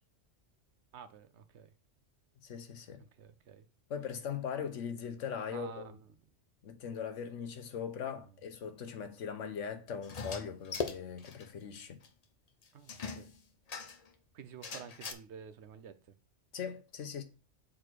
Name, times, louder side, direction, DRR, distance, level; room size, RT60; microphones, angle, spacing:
voice 1, 0.9-1.7 3.0-3.7 5.5-6.0 8.2-8.3 12.7-13.3 14.3-16.1, right 7 dB, 65° right, 1.0 m, -50 dB
voice 2, 2.4-3.0 3.9-5.9 6.6-12.0 16.5-17.2, left 7 dB, 75° left, 1.3 m, -40 dB
sound 1, 10.0-11.4 11.7-11.8 12.0-12.1 12.9-14.1 14.6-15.1, left 5 dB, 40° left, 0.7 m, -40 dB
6.5 x 4.4 x 4.6 m
omnidirectional pair, 1.3 m